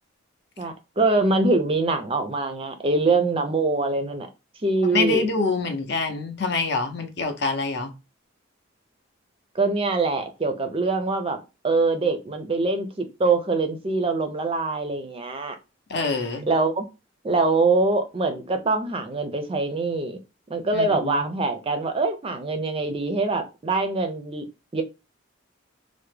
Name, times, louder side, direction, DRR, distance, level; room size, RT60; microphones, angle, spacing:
voice 1, 0.6-4.3 4.6-5.3 9.5-11.4 11.6-15.6 16.5-16.8 17.2-20.2 20.5-24.4 24.7-24.8, right 3 dB, 30° right, 0.4 m, -24 dB
voice 2, 4.9-7.9 15.9-16.5 20.7-21.1, left 3 dB, 55° left, 0.7 m, -25 dB
3.3 x 2.1 x 3.2 m
head